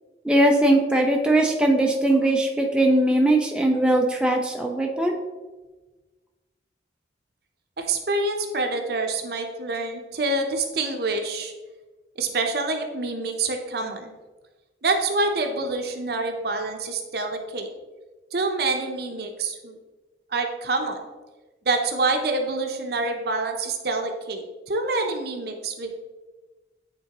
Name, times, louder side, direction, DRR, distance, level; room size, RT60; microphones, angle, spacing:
voice 1, 0.2-5.2, right 1 dB, 5° right, 0 dB, 0.4 m, -20 dB
voice 2, 7.8-11.5 12.2-14.1 14.8-17.7 18.3-19.8 20.3-21.0 21.7-25.9, right 3 dB, 60° right, 4 dB, 0.7 m, -26 dB
8.9 x 3.7 x 2.9 m, 1.2 s
head